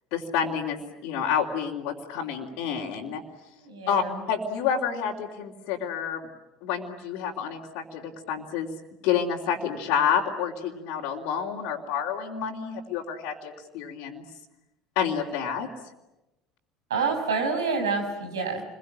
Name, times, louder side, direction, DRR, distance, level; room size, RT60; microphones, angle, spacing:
voice 1, 0.1-3.2 3.9-4.0 4.3-6.3 6.6-8.7 9.0-14.2 14.9-15.7, left 7 dB, 60° left, -5 dB, 3.3 m, -29 dB
voice 2, 3.6-4.2 16.9-18.6, right 4 dB, 80° right, 5 dB, 6.5 m, -27 dB
29.5 x 22.5 x 8.9 m, 0.98 s
figure-of-eight pair, 65°, 2 cm